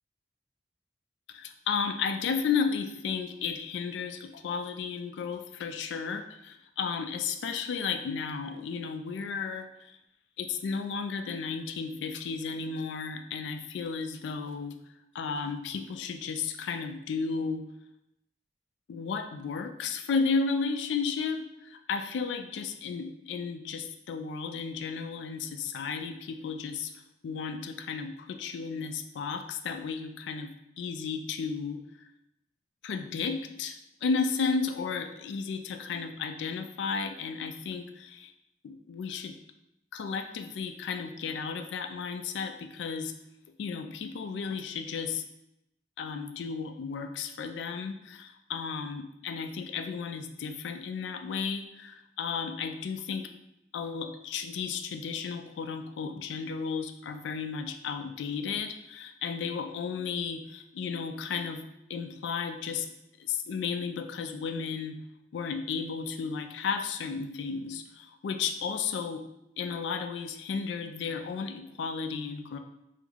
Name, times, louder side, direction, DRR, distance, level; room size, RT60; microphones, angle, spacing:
voice 1, 1.3-10.0 10.4-14.8 15.1-17.6 18.9-26.9 27.2-32.1 32.8-38.3 38.6-39.4 39.9-43.1 43.6-45.2 46.0-53.3 53.7-61.6 61.9-62.9 63.2-65.0 65.3-69.2 69.6-72.6, left 5 dB, 85° left, 7 dB, 0.3 m, -33 dB
3.1 x 2.0 x 3.5 m, 0.83 s
head